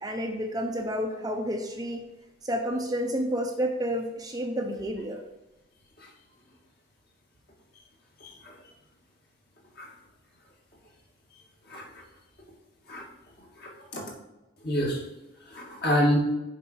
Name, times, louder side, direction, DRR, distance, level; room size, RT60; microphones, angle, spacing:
voice 1, 0.0-2.0 2.4-5.2, equal, 20° right, 3 dB, 0.6 m, -30 dB
voice 2, 8.2-8.5 9.8-9.9 11.7-12.0 12.9-13.0 13.6-14.0 14.6-15.0 15.5-16.2, equal, 50° left, -3 dB, 2.2 m, -28 dB
7.1 x 5.0 x 4.6 m, 0.99 s
head